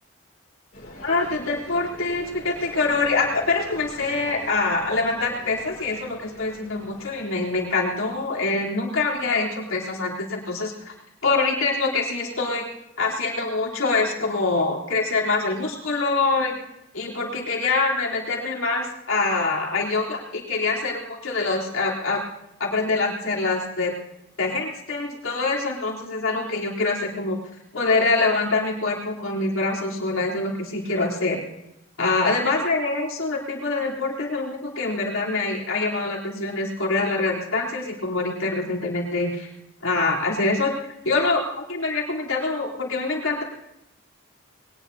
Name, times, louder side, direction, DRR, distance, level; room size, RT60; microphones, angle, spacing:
sound 1, 0.7-8.7, left 1 dB, 40° left, 5.2 m, -45 dB
voice 1, 1.0-10.9 11.2-12.7 13.0-16.6 16.9-22.2 22.6-23.9 24.4-27.4 27.7-31.4 32.0-39.5 39.8-40.7 41.0-41.4 41.7-43.4, left 3 dB, 80° left, -3 dB, 3.6 m, -25 dB
22.0 x 19.0 x 2.8 m, 0.84 s
head